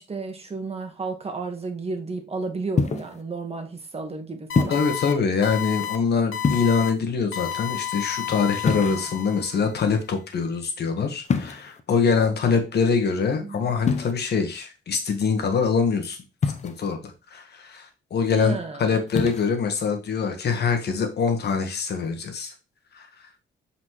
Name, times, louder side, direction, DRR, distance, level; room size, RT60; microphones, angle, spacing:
voice 1, 0.0-4.8 12.4-12.6 13.4-13.7 18.3-18.8, right 3 dB, 30° right, 5 dB, 1.5 m, -32 dB
sound 1, 2.8-3.2 4.6-5.0 6.4-7.0 8.6-9.4 11.3-11.8 13.8-14.1 16.4-16.9 19.1-19.5, left 5 dB, 35° left, 0.8 m, -25 dB
sound 2, 4.5-5.1 5.4-6.0 6.3-6.9 7.3-9.6, left 12 dB, 75° left, 0.7 m, -31 dB
voice 2, 4.7-16.2 16.6-22.5 22.9-23.3, left 5 dB, 55° left, 5 dB, 1.4 m, -24 dB
7.5 x 4.2 x 3.1 m, 0.29 s
cardioid pair, 90°, 20 cm